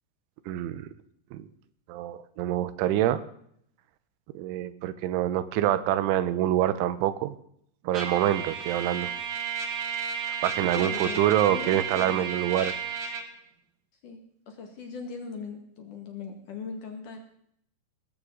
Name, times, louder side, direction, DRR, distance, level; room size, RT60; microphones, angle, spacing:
voice 1, 0.5-0.9 1.3-1.5 1.9-3.2 4.3-7.4 7.8-9.1 10.4-12.7, right 12 dB, 90° right, 13 dB, 3.3 m, -26 dB
Trumpet, 7.9-13.3, right 7 dB, 50° right, 2.6 m, -33 dB
voice 2, 10.8-12.2 14.0-14.2 14.5-17.2, left 5 dB, 55° left, 3 dB, 2.8 m, -39 dB
19.5 x 14.0 x 3.9 m, 0.68 s
omnidirectional pair, 5.4 m